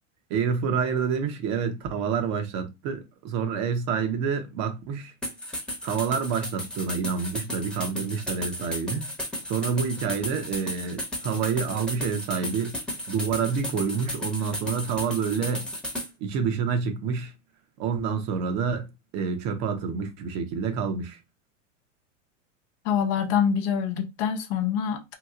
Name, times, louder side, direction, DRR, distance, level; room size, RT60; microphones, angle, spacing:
voice 1, 0.3-5.1 5.8-9.1 9.5-12.8 13.1-15.7 16.2-17.3 17.8-21.2, right 6 dB, 45° right, 0.9 m, -28 dB
sound 1, 5.2-16.1, left 1 dB, ahead, 1.0 m, -34 dB
voice 2, 22.8-25.1, left 8 dB, 55° left, 0.8 m, -25 dB
3.0 x 2.6 x 2.4 m
hypercardioid pair, 100°, 37 cm